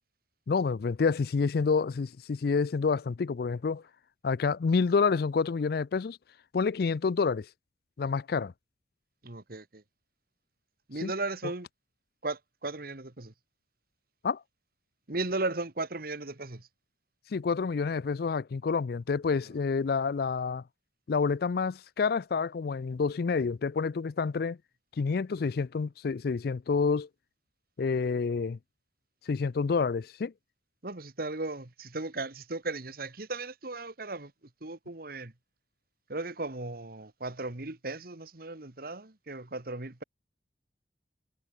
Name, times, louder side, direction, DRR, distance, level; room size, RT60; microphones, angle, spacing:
voice 1, 0.5-3.8 4.2-6.2 6.5-7.5 8.0-8.5 11.0-11.1 14.2-14.4 17.3-20.6 21.1-24.6 25.0-27.1 27.8-28.6 29.3-30.3, left 5 dB, 60° left, 0.4 m, -28 dB
voice 2, 9.2-9.8 10.9-11.7 12.2-13.3 15.1-16.7 30.8-34.3 34.6-35.3 36.1-40.0, right 2 dB, 55° right, 1.7 m, -36 dB
head